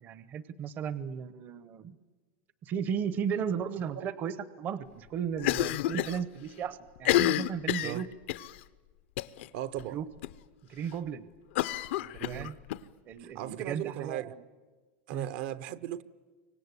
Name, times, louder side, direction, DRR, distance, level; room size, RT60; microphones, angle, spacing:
voice 1, 0.0-1.9 2.6-8.1 9.9-10.1 10.7-11.2 12.0-12.6 13.1-14.4 15.1-15.3, right 7 dB, 30° right, 0.8 m, -35 dB
Cough, 5.4-6.2 6.5-6.6 7.0-8.5 9.2-9.5 9.8-9.9 10.2-10.3 11.5-12.8, left 15 dB, 70° left, 0.8 m, -29 dB
voice 2, 9.5-10.0 12.2-12.5 13.2-14.3 15.1-16.0, right 12 dB, 55° right, 0.8 m, -37 dB
29.0 x 25.0 x 8.2 m
supercardioid pair, 160°, 7 cm